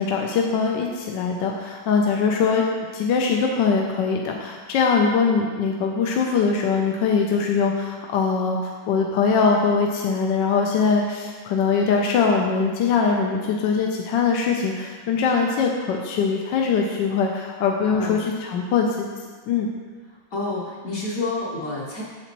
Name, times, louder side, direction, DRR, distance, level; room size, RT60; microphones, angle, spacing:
voice 1, 0.0-2.6 2.9-19.1 19.5-19.7, left 5 dB, 75° left, 1 dB, 1.3 m, -22 dB
voice 2, 17.8-18.2 20.3-22.0, left 2 dB, 55° left, -6 dB, 1.2 m, -29 dB
8.0 x 7.1 x 3.0 m, 1.5 s
omnidirectional pair, 2.1 m